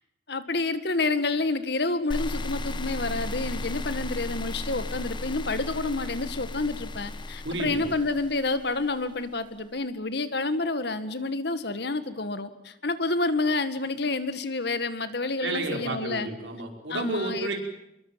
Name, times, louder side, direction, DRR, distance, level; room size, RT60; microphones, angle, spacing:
voice 1, 0.3-16.3 16.9-17.5, left 3 dB, 60° left, 11 dB, 1.9 m, -29 dB
sound 1, 2.1-9.2, left 2 dB, 25° left, 1.1 m, -35 dB
voice 2, 7.4-7.9 15.4-17.6, right 2 dB, 85° right, 3 dB, 5.1 m, -31 dB
26.5 x 22.5 x 7.6 m, 0.85 s
head